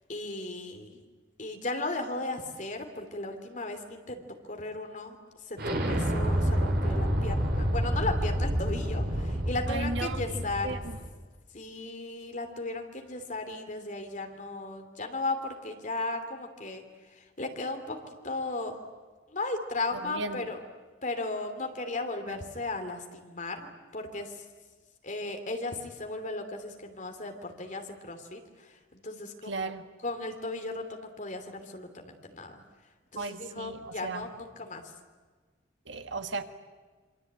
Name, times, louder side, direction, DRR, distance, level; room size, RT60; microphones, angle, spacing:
voice 1, 0.1-1.0 1.4-10.8 11.5-18.0 18.2-18.8 19.3-20.6 21.0-24.4 25.0-29.7 30.0-32.6 33.1-34.9, left 2 dB, 40° left, 5 dB, 3.1 m, -36 dB
Explosion, 5.6-11.1, equal, 50° right, 3.4 m, -28 dB
voice 2, 9.7-10.2 10.6-10.8 20.0-20.5 22.3-22.4 29.5-29.8 33.2-33.8 34.0-34.3 35.9-36.4, right 3 dB, 65° right, 8 dB, 1.6 m, -35 dB
27.0 x 24.5 x 8.9 m, 1.4 s
head